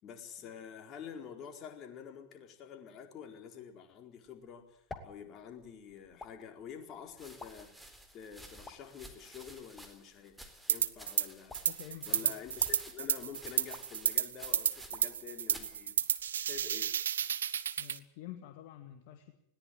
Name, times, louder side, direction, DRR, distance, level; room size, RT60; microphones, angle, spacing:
voice 1, 0.0-10.4 10.7-11.6 12.0-16.0 16.4-16.9, left 7 dB, 30° left, 5 dB, 4.3 m, -48 dB
sound 1, 4.2-16.4, left 4 dB, 15° left, 2.7 m, -56 dB
sound 2, 6.1-6.2 7.1-15.2 15.5-15.8 16.6-17.0, right 1 dB, 5° right, 3.9 m, -54 dB
sound 3, 10.7-11.3 11.5-18.0, right 9 dB, 65° right, 1.1 m, -32 dB
voice 2, 11.7-12.3 17.8-19.3, left 12 dB, 50° left, 7 dB, 2.0 m, -48 dB
20.5 x 18.5 x 9.2 m, 0.71 s
figure-of-eight pair, 90°, 0 cm